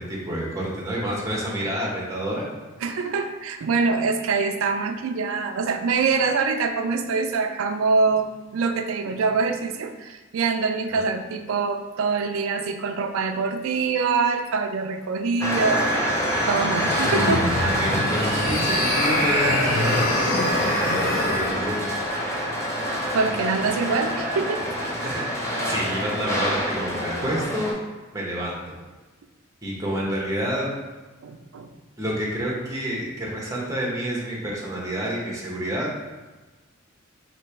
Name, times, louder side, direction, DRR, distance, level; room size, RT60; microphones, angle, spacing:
voice 1, 0.0-2.5 10.9-11.0 17.6-22.0 25.0-27.7 28.1-28.7 29.6-30.7 32.0-35.9, right 1 dB, 15° right, -3 dB, 0.8 m, -28 dB
voice 2, 2.8-16.2 16.4-17.7 23.1-24.6 25.6-25.7 31.2-31.7, right 4 dB, 80° right, 7 dB, 0.4 m, -24 dB
sound 1, 15.4-27.7, equal, 15° left, 0.5 m, -26 dB
sound 2, 16.8-21.6, left 2 dB, 45° left, 0.7 m, -25 dB
3.1 x 2.9 x 4.5 m, 1.2 s
head